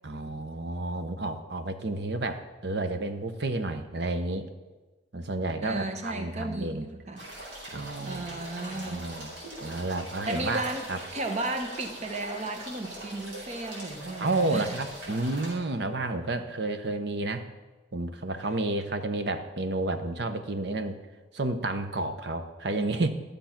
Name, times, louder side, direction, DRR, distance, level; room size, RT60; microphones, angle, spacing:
voice 1, 0.0-4.5 5.1-6.9 7.7-8.5 8.7-9.3 9.6-11.0 14.2-17.4 17.9-21.0 21.3-23.1, right 2 dB, 60° right, 8 dB, 0.8 m, -31 dB
voice 2, 5.6-7.3 8.0-9.1 10.3-10.9 11.1-14.7, right 2 dB, 35° right, 6 dB, 1.0 m, -34 dB
sound 1, 7.2-15.5, right 1 dB, 85° right, 4.2 m, -42 dB
12.5 x 6.8 x 5.8 m, 1.2 s
head